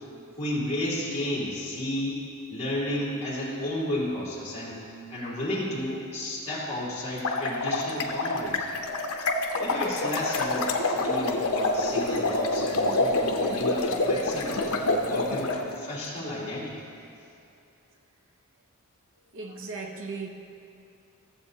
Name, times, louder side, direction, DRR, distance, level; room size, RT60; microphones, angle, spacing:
voice 1, 0.4-2.2 2.5-4.8 5.1-8.7 9.6-16.7, left 1 dB, 30° left, -7 dB, 2.5 m, -32 dB
sound 1, 7.1-15.6, left 2 dB, 75° left, 0.7 m, -27 dB
voice 2, 19.3-20.3, right 4 dB, 65° right, 2 dB, 0.8 m, -37 dB
15.0 x 7.5 x 2.8 m, 2.6 s
head